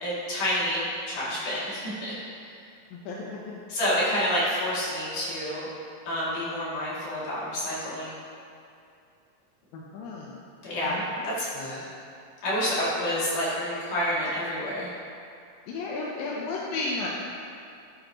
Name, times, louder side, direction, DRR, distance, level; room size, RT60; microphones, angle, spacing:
voice 1, 0.0-2.1 2.4-2.5 3.7-5.7 6.1-8.2 10.6-11.5 12.4-14.9, equal, 65° left, -9 dB, 4.3 m, -28 dB
voice 2, 2.9-3.5 9.7-10.3 10.8-11.3 11.5-11.9 15.7-17.1, left 3 dB, 90° left, -4 dB, 2.7 m, -34 dB
13.0 x 8.8 x 3.1 m, 2.5 s
omnidirectional pair, 3.9 m